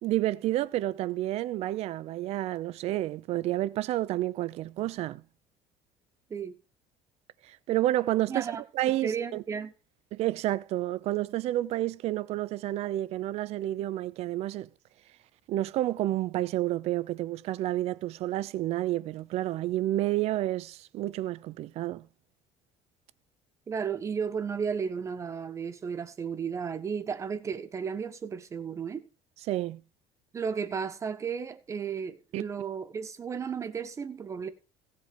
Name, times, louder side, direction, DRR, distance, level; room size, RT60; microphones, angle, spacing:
voice 1, 0.0-5.2 7.5-8.5 8.7-9.4 10.1-14.7 15.5-22.0 29.5-29.8 32.3-32.5, right 15 dB, 50° right, 0.7 m, -30 dB
voice 2, 8.3-8.6 9.0-9.7 23.7-29.0 30.3-34.5, right 6 dB, 20° right, 1.2 m, -34 dB
16.5 x 7.6 x 5.2 m
cardioid pair, 175°, 14 cm